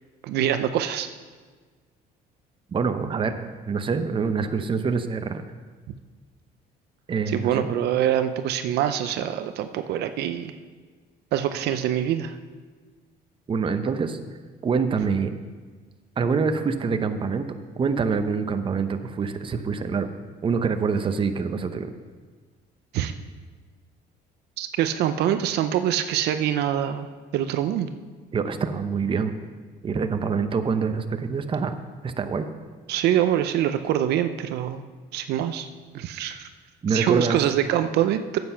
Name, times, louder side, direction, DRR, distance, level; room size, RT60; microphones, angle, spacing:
voice 1, 0.2-1.1 7.3-10.5 11.3-12.3 22.9-23.1 24.6-27.1 27.3-27.9 32.9-34.8 35.1-35.7 35.9-36.5 36.9-38.4, right 11 dB, 75° right, 9 dB, 0.6 m, -24 dB
voice 2, 2.7-5.4 7.1-7.7 13.5-14.2 14.6-15.3 16.2-20.1 20.4-21.9 28.3-29.3 29.8-31.7 32.0-32.5 36.8-37.4, right 5 dB, 30° right, 8 dB, 0.8 m, -25 dB
9.6 x 7.9 x 5.7 m, 1.5 s
cardioid pair, 110°, 17 cm